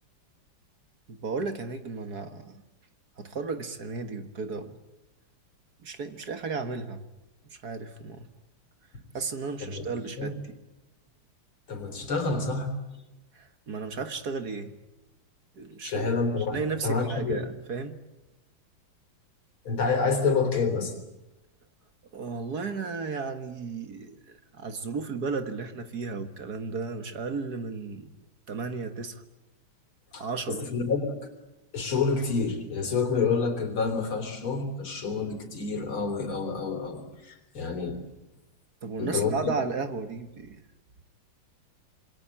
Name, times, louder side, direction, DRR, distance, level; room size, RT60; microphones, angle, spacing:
voice 1, 1.1-2.6 3.2-4.8 5.8-7.0 7.5-8.3 9.1-10.6 13.3-14.7 15.6-16.1 16.5-18.0 22.1-28.1 28.5-29.2 30.2-30.7 38.8-40.6, right 4 dB, 50° right, 9 dB, 1.9 m, -34 dB
voice 2, 11.7-12.7 15.8-17.4 19.7-20.9 30.1-30.2 30.6-31.1 31.7-38.0 39.0-39.3, left 4 dB, 80° left, 6 dB, 4.5 m, -28 dB
27.0 x 22.0 x 8.6 m, 1.0 s
omnidirectional pair, 2.3 m